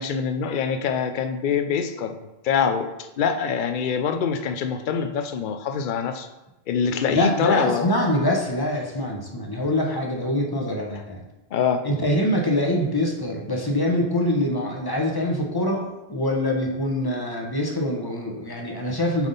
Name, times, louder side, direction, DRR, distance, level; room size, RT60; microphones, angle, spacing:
voice 1, 0.0-2.2 2.4-6.3 6.7-8.0 11.5-11.8, left 6 dB, 60° left, 8 dB, 0.7 m, -24 dB
voice 2, 7.1-11.2 11.8-19.3, left 1 dB, 25° left, 0 dB, 0.9 m, -24 dB
7.1 x 3.6 x 4.0 m, 0.98 s
omnidirectional pair, 1.1 m